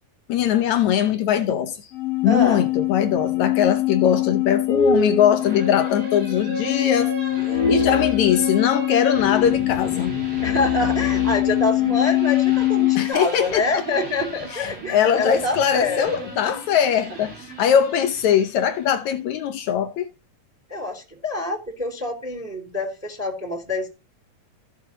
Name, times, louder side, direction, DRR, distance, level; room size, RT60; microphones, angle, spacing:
voice 1, 0.3-1.9 2.2-7.2 7.7-10.2 13.0-13.8 14.5-20.1, left 9 dB, 70° left, 1.8 m, -21 dB
sound 1, 1.9-13.1, left 11 dB, 55° left, 1.8 m, -22 dB
voice 2, 2.2-2.6 7.5-8.1 10.4-16.4 17.1-17.2 20.7-23.9, left 2 dB, 5° right, 2.8 m, -26 dB
sound 2, 5.4-19.0, right 2 dB, 90° right, 9.8 m, -36 dB
16.0 x 7.0 x 2.9 m
omnidirectional pair, 4.4 m